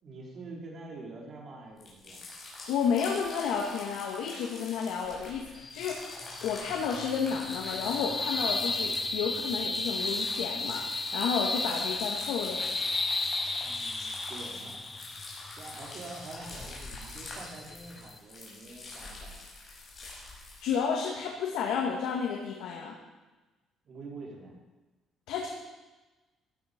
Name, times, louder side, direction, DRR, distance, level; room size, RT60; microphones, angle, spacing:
voice 1, 0.0-2.2 13.6-15.1 15.6-19.4 23.8-24.5, right 3 dB, 45° right, -2 dB, 4.4 m, -46 dB
sound 1, 1.8-20.8, left 2 dB, 35° left, 5.9 m, -45 dB
voice 2, 2.7-6.0 6.4-10.8 11.1-12.7 20.0-20.2 20.6-23.0 25.3-25.5, left 6 dB, 90° left, -1 dB, 2.1 m, -31 dB
sound 2, 5.6-18.2, left 3 dB, 15° left, 0.9 m, -34 dB
17.0 x 11.5 x 5.4 m, 1.2 s
cardioid pair, 150°, 0 cm